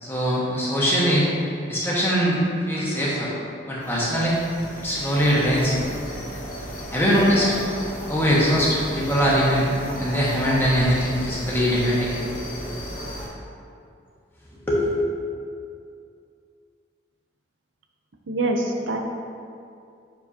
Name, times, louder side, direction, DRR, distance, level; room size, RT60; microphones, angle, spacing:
voice 1, 0.0-1.3 1.7-3.3 3.7-4.3 4.8-5.8 6.9-7.5 8.1-9.7 10.0-12.1 14.7-14.9, equal, 10° left, -7 dB, 1.4 m, -21 dB
sound 1, 3.8-13.3, equal, 40° left, 1.6 m, -34 dB
voice 2, 18.3-19.0, right 2 dB, 75° right, 2 dB, 0.7 m, -24 dB
7.6 x 6.5 x 2.8 m, 2.4 s
head